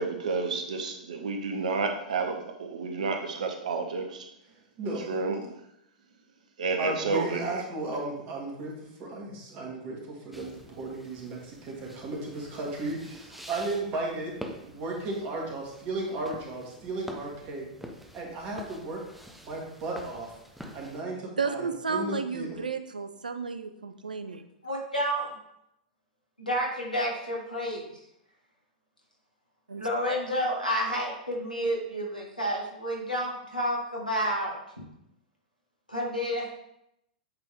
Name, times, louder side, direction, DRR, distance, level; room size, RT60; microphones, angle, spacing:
voice 1, 0.0-4.3 4.9-5.4 6.6-7.6, right 4 dB, 60° right, 5 dB, 0.8 m, -30 dB
voice 2, 4.8-5.1 6.8-17.8 18.1-19.0 19.4-20.3 20.7-22.6, right 2 dB, 35° right, -1 dB, 1.8 m, -35 dB
sound 1, 10.3-21.0, equal, ahead, 0.6 m, -47 dB
voice 3, 21.4-24.4 29.7-29.8, right 5 dB, 75° right, 9 dB, 0.4 m, -32 dB
voice 4, 24.6-25.3 26.4-28.0 29.7-34.8 35.9-36.5, equal, 90° left, -2 dB, 1.7 m, -30 dB
8.1 x 3.5 x 3.5 m, 0.80 s
figure-of-eight pair, 100°, 4 cm